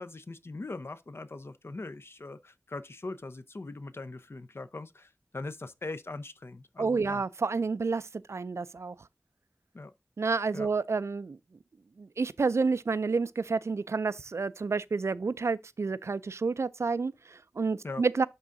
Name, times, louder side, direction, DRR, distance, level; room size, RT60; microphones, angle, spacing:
voice 1, 0.0-7.2 9.7-9.9 10.5-10.7 17.8-18.0, left 3 dB, 55° left, 0.7 m, -41 dB
voice 2, 6.8-8.0 8.3-8.9 10.2-11.4 12.0-18.3, right 4 dB, 70° right, 0.4 m, -29 dB
11.0 x 3.7 x 2.6 m
wide cardioid pair, 70°, 5 cm